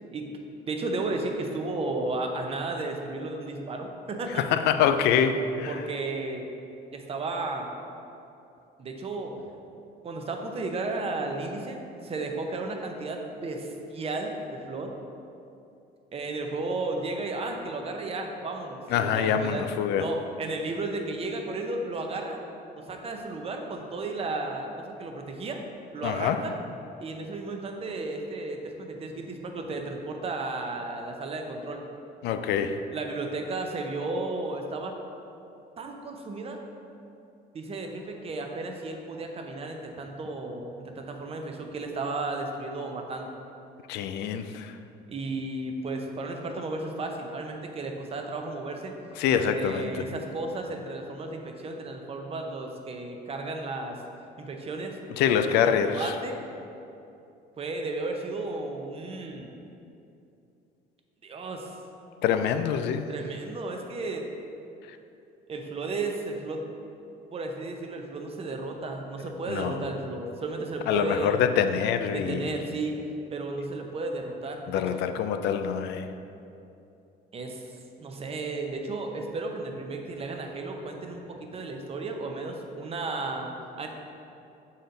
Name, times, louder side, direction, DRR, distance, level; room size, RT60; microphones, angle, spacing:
voice 1, 0.7-4.4 5.7-6.5 6.9-7.7 8.8-9.4 10.0-14.9 16.1-19.6 20.0-22.4 22.8-25.6 25.9-26.5 27.0-31.8 32.9-34.9 35.8-36.6 37.5-43.3 45.1-48.9 49.3-54.0 54.4-55.0 55.5-55.6 55.9-56.4 57.6-59.5 61.2-61.7 63.1-64.3 65.5-66.7 67.3-71.4 72.1-73.0 73.3-75.0 77.3-77.6 78.0-83.5 83.8-83.9, right 2 dB, 35° right, 3 dB, 0.7 m, -34 dB
voice 2, 4.3-5.8 18.9-20.1 26.0-26.4 32.2-32.8 43.9-44.8 49.2-50.0 55.2-56.1 62.2-63.1 69.5-69.9 70.9-72.5 74.7-76.1, left 8 dB, 80° left, 9 dB, 0.4 m, -25 dB
6.8 x 4.2 x 3.8 m, 2.7 s
cardioid pair, 110°, 17 cm